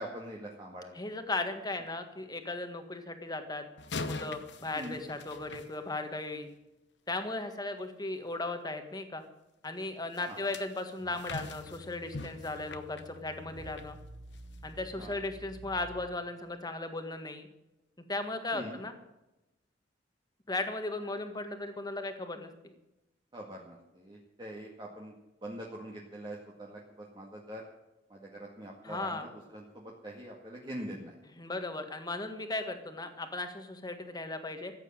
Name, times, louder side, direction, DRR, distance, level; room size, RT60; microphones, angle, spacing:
voice 1, 0.0-0.9 4.7-5.0 10.3-10.5 15.0-15.1 18.5-18.8 23.3-25.1 25.4-27.6 28.1-31.1, right 1 dB, 25° right, -2 dB, 1.9 m, -43 dB
voice 2, 0.9-3.6 4.0-6.5 7.1-9.2 9.6-14.0 14.6-17.5 18.1-18.9 20.5-22.5 28.8-29.3 31.3-34.7, left 2 dB, 20° left, 7 dB, 1.7 m, -36 dB
sound 1, 3.8-6.4 10.1-13.9 14.3-14.6 15.1-15.2, left 3 dB, 80° left, 1.0 m, -43 dB
sound 2, 11.0-16.4, right 1 dB, 80° right, 1.1 m, -51 dB
15.0 x 8.4 x 8.9 m, 0.96 s
head